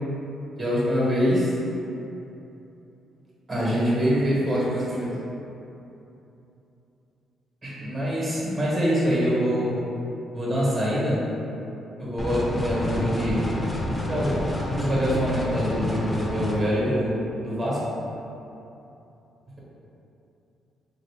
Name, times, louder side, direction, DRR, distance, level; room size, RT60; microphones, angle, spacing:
voice 1, 0.6-1.5 3.5-5.2 7.6-9.8 10.3-11.3 12.0-13.6 14.0-14.4 14.7-17.9, equal, 40° right, -6 dB, 1.1 m, -24 dB
sound 1, 12.2-16.6, left 1 dB, 15° left, 0.4 m, -29 dB
3.1 x 2.5 x 3.4 m, 2.9 s
cardioid pair, 90°, 0 cm